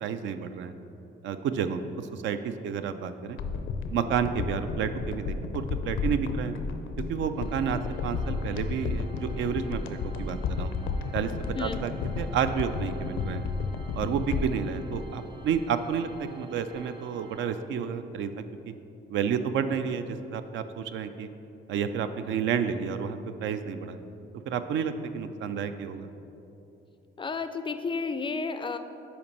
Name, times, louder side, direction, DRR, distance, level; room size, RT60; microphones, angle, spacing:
voice 1, 0.0-0.7 1.2-3.4 3.9-6.5 7.1-10.7 11.1-11.3 11.6-13.4 13.9-18.7 19.1-21.3 21.7-24.0 24.5-26.1, right 7 dB, 70° right, 9 dB, 0.4 m, -30 dB
sound 1, 3.4-15.8 16.1-16.2, left 4 dB, 75° left, 0.5 m, -33 dB
Organ, 7.3-18.1, right 2 dB, 25° right, 0.7 m, -50 dB
voice 2, 27.2-28.8, left 4 dB, 25° left, 10 dB, 0.3 m, -32 dB
5.7 x 4.3 x 5.3 m, 2.9 s
cardioid pair, 90°, 20 cm